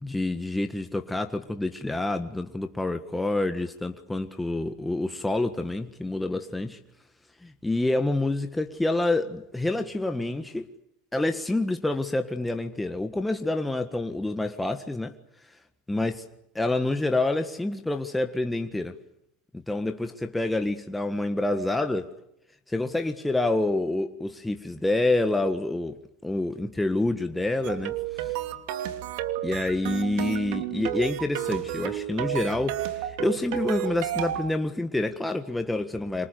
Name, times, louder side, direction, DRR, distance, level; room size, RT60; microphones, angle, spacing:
voice 1, 0.0-6.8 7.4-10.7 11.1-15.1 15.9-16.2 16.5-19.0 19.5-22.1 22.7-25.9 26.2-28.3 29.4-36.3, left 2 dB, 5° left, 1.6 m, -27 dB
sound 1, 27.6-34.5, right 13 dB, 70° right, 2.8 m, -31 dB
28.5 x 26.0 x 6.9 m
supercardioid pair, 115°, 0 cm